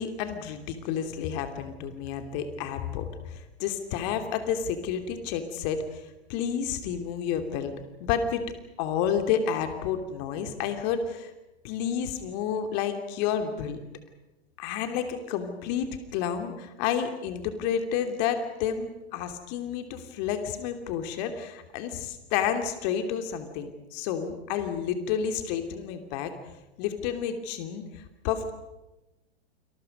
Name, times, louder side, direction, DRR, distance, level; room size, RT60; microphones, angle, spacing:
voice 1, 0.0-6.0 6.3-7.7 8.0-8.4 8.8-11.3 11.6-13.8 14.6-26.3 26.8-28.5, left 8 dB, 45° left, 7 dB, 2.9 m, -30 dB
29.5 x 26.5 x 5.4 m, 1.0 s
figure-of-eight pair, 100°, 31 cm